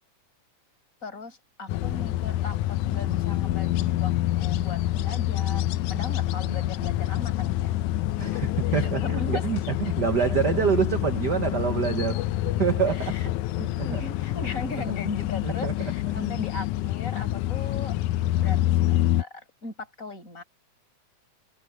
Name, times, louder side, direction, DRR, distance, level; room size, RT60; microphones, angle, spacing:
voice 1, 1.0-7.8 8.2-8.4 8.8-9.5 9.8-10.0 13.0-13.3 13.8-18.0 18.4-20.4, left 2 dB, 25° left, 7.9 m, -38 dB
sound 1, 1.7-19.2, left 15 dB, 80° left, 1.9 m, -27 dB
voice 2, 8.2-12.2 12.6-13.1 13.6-14.0 15.4-16.4, right 8 dB, 90° right, 0.9 m, -27 dB
omnidirectional pair, 3.6 m